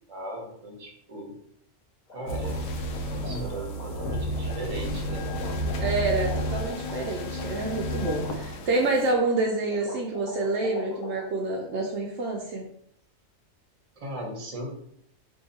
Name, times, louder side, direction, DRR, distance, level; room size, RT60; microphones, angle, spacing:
voice 1, 0.0-1.3 2.1-2.6 3.0-5.3 14.0-14.7, right 1 dB, 30° right, 0 dB, 0.8 m, -37 dB
sound 1, 2.1-11.2, left 2 dB, 40° left, 1.0 m, -42 dB
sound 2, 2.3-9.1, equal, 85° left, 1.0 m, -31 dB
voice 2, 5.8-12.7, right 2 dB, 70° right, 0 dB, 0.8 m, -27 dB
2.7 x 2.6 x 4.0 m, 0.68 s
omnidirectional pair, 1.3 m